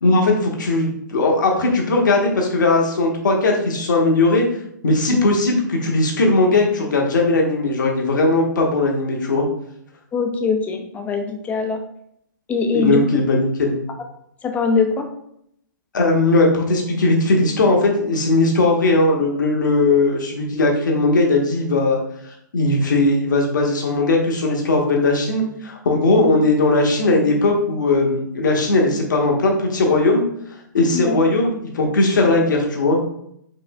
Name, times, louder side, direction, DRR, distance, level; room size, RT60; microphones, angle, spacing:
voice 1, 0.0-4.5 4.8-9.4 12.7-13.8 15.9-22.0 22.3-30.2 30.7-33.0, left 2 dB, 70° left, 1 dB, 1.0 m, -18 dB
voice 2, 10.1-11.8 12.5-13.0 14.4-15.0 26.2-26.3 30.9-31.2, left 4 dB, 15° left, 4 dB, 0.5 m, -22 dB
4.9 x 3.2 x 2.2 m, 0.72 s
figure-of-eight pair, 120°, 11 cm